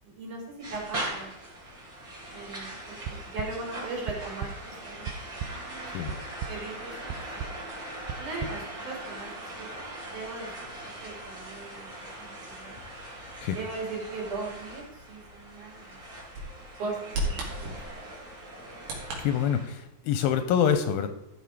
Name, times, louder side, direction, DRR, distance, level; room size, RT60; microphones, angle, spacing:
voice 1, 0.0-0.4 0.7-1.3 2.3-7.5 8.2-12.8 13.5-16.0 16.8-17.7, right 3 dB, 55° right, -2 dB, 4.3 m, -39 dB
sound 1, 0.6-19.7, right 1 dB, 25° right, 3.5 m, -41 dB
sound 2, 3.1-3.5 4.1-4.5 4.9-5.5 6.1-6.5 7.1-7.5 8.1-8.5, right 10 dB, 90° right, 1.8 m, -34 dB
Bird vocalization bird call bird song, 13.1-19.2, right 1 dB, 70° right, 3.9 m, -39 dB
voice 2, 19.2-21.1, left 8 dB, 80° left, 9 dB, 2.3 m, -26 dB
13.0 x 5.5 x 4.8 m, 0.93 s
omnidirectional pair, 4.4 m